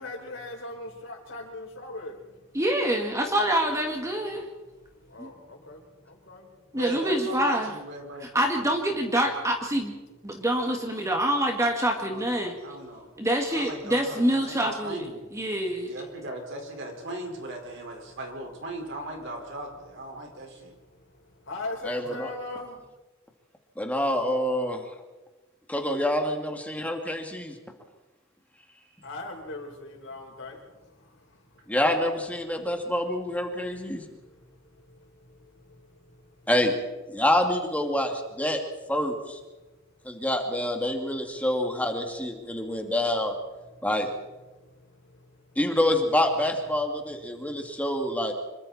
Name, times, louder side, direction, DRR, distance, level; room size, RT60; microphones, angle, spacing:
voice 1, 0.0-2.6 4.7-6.8 20.7-22.9 29.0-31.7 32.6-32.8 33.5-33.6 33.9-36.5 39.6-40.0 42.8-42.9 43.7-43.9 44.5-45.6 47.4-47.7, left 2 dB, 65° left, 2 dB, 4.5 m, -42 dB
voice 2, 2.5-4.5 5.2-5.3 6.7-7.7 8.2-9.9 10.2-12.6 13.2-15.0 15.3-15.9, right 1 dB, 15° right, 2 dB, 2.0 m, -26 dB
voice 3, 6.7-8.3 12.1-13.1 13.5-15.3 15.8-20.7 22.0-22.2, right 2 dB, 60° right, 2 dB, 4.9 m, -38 dB
voice 4, 21.8-22.3 23.8-24.8 25.7-27.5 31.7-34.0 36.5-36.7 37.1-38.6 38.9-39.4 40.0-43.3 43.8-44.1 45.6-48.3, left 1 dB, 5° left, 3 dB, 2.5 m, -26 dB
26.5 x 23.5 x 4.3 m, 1.1 s
head